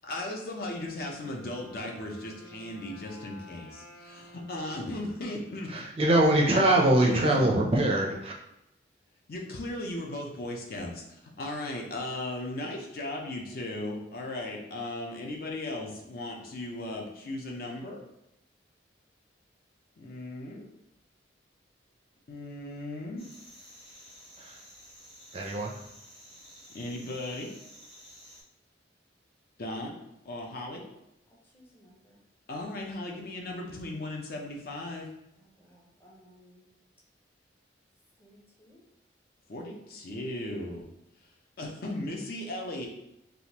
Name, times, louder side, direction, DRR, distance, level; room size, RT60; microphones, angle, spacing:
voice 1, 0.1-3.6 4.1-5.9 7.0-7.2 9.3-18.0 20.0-20.7 22.3-23.3 26.7-27.5 29.6-29.9 30.2-30.8 32.5-35.1 39.5-40.9 41.6-42.9, left 1 dB, 50° left, 0 dB, 0.5 m, -36 dB
Wind instrument woodwind instrument, 1.0-5.9, equal, 90° left, 1.1 m, -52 dB
voice 2, 5.7-8.3 24.4-24.6 25.3-25.7, right 1 dB, 30° right, 0 dB, 0.4 m, -23 dB
sound 1, 23.2-28.4, equal, 30° left, 1.5 m, -52 dB
voice 3, 31.4-32.2 35.4-36.7 38.2-38.8, equal, 10° left, -3 dB, 0.7 m, -59 dB
3.5 x 2.5 x 2.8 m, 0.86 s
head